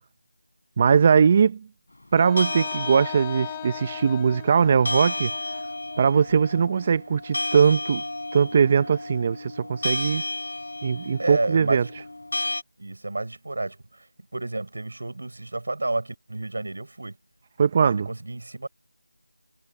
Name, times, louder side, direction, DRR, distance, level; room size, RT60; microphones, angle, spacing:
voice 1, 0.8-1.6 2.1-5.3 6.0-8.0 8.3-10.2 10.8-11.9 17.6-18.1, right 6 dB, 20° right, 0.9 m, -20 dB
Wind instrument woodwind instrument, 2.2-6.2, left 15 dB, 10° left, 4.8 m, -39 dB
sound 1, 2.4-12.6, left 2 dB, 65° left, 7.3 m, -33 dB
voice 2, 11.2-11.9 12.8-14.1 14.3-17.2 17.9-18.7, right 2 dB, 60° right, 7.4 m, -30 dB
figure-of-eight pair, 175°, 0 cm